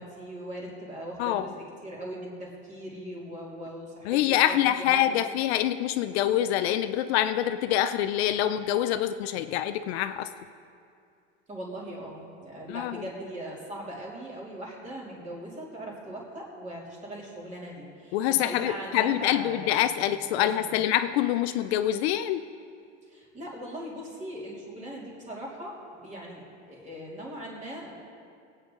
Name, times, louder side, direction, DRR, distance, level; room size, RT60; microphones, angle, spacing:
voice 1, 0.0-5.5 11.5-20.7 23.1-27.9, right 1 dB, 20° right, -4 dB, 3.0 m, -40 dB
voice 2, 4.1-10.3 12.7-12.9 18.1-22.4, left 12 dB, 60° left, 10 dB, 0.5 m, -25 dB
21.0 x 8.8 x 3.8 m, 2.4 s
supercardioid pair, 150°, 36 cm